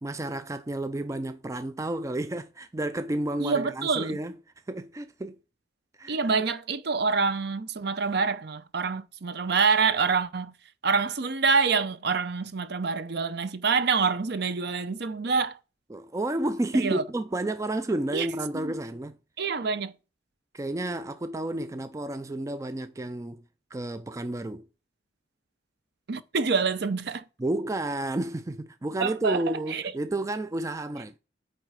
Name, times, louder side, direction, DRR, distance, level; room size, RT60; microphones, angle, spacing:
voice 1, 0.0-4.3 4.7-5.4 6.0-6.2 15.9-19.2 20.5-23.4 23.7-24.7 27.4-31.2, right 1 dB, 15° right, 0.4 m, -31 dB
voice 2, 3.4-4.2 6.1-10.5 10.8-15.6 16.7-17.0 18.1-18.3 18.5-18.7 19.4-19.9 26.1-27.2 29.0-29.8, right 5 dB, 55° right, 0.7 m, -26 dB
8.9 x 3.7 x 4.7 m
head